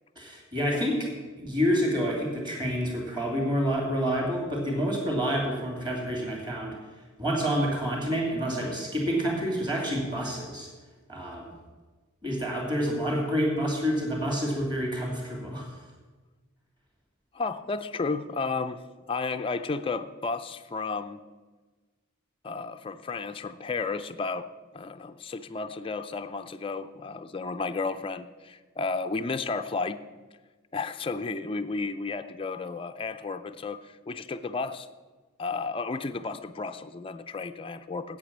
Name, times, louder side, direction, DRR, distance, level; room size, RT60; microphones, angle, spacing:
voice 1, 0.2-1.0 1.4-6.7 7.2-10.7 11.1-11.4 12.2-15.7, equal, 20° right, 0 dB, 2.8 m, -28 dB
voice 2, 17.3-18.8 19.1-21.2 22.4-24.5 24.7-30.0 30.7-34.9 35.4-38.2, left 4 dB, 25° left, 9 dB, 0.4 m, -33 dB
8.6 x 8.3 x 7.3 m, 1.3 s
head